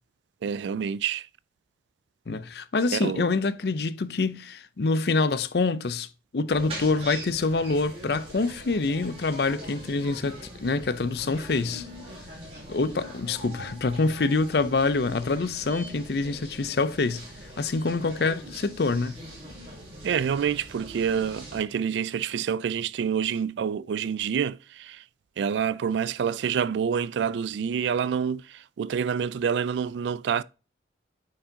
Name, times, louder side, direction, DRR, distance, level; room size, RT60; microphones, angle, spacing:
voice 1, 0.4-1.3 2.9-3.3 20.0-25.0 25.4-30.4, right 7 dB, 75° right, 0.3 m, -27 dB
voice 2, 2.3-6.1 6.3-11.9 12.7-17.2 17.6-19.2, left 3 dB, 60° left, 0.5 m, -26 dB
sound 1, 6.5-21.6, right 1 dB, 35° right, 3.6 m, -42 dB
8.8 x 4.7 x 2.7 m
head